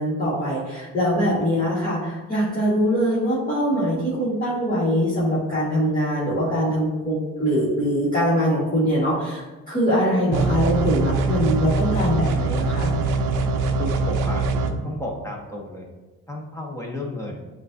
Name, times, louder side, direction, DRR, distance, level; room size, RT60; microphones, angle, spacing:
voice 1, 0.0-12.9, equal, 30° left, -10 dB, 1.5 m, -22 dB
sound 1, 10.3-14.7, right 3 dB, 90° right, 0.5 m, -23 dB
voice 2, 13.7-14.5 14.8-15.9 16.3-17.4, left 1 dB, 10° left, -2 dB, 1.1 m, -32 dB
7.5 x 2.5 x 2.6 m, 1.2 s
cardioid pair, 90°, 30 cm